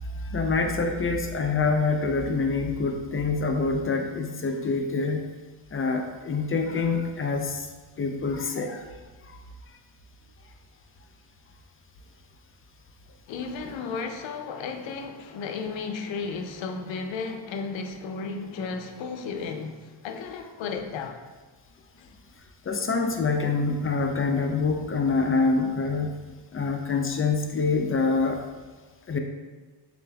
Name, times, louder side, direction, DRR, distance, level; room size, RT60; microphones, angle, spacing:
voice 1, 0.0-5.2 5.7-7.7 8.0-8.8 9.2-9.4 13.6-13.7 22.6-26.2 26.5-28.4 29.1-29.2, left 4 dB, 30° left, 4 dB, 0.4 m, -26 dB
voice 2, 13.3-21.2 22.0-22.1, left 4 dB, 90° left, 5 dB, 0.5 m, -34 dB
6.6 x 2.5 x 2.2 m, 1.3 s
cardioid pair, 85°, 44 cm